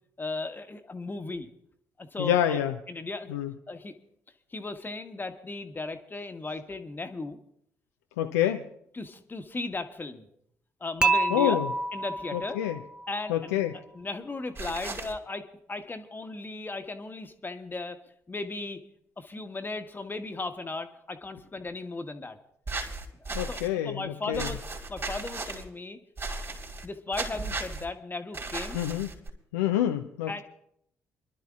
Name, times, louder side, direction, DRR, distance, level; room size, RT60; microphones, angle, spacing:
voice 1, 0.2-1.5 2.0-2.6 2.9-3.3 3.7-3.9 4.5-7.4 8.9-10.3 10.8-11.6 11.9-12.6 13.1-15.4 15.7-18.0 18.3-18.8 19.2-22.4 23.2-23.6 23.8-24.6 24.9-26.0 26.8-28.8 30.3-30.4, left 3 dB, 25° left, 7 dB, 1.2 m, -36 dB
voice 2, 2.2-2.7 3.3-3.5 8.2-8.6 11.3-11.7 12.3-12.8 13.3-13.7 23.3-24.5 28.7-29.1 29.5-30.4, left 12 dB, 80° left, 5 dB, 0.5 m, -27 dB
Dishes pots and pans / Chink clink, 11.0-13.1, right 2 dB, 10° right, 0.5 m, -28 dB
sound 1, 14.5-15.1 22.7-23.7 24.3-25.6 26.2-26.9 27.1-27.8 28.3-29.3, right 3 dB, 35° right, 3.5 m, -35 dB
28.0 x 11.5 x 2.4 m, 0.72 s
hypercardioid pair, 45°, 8 cm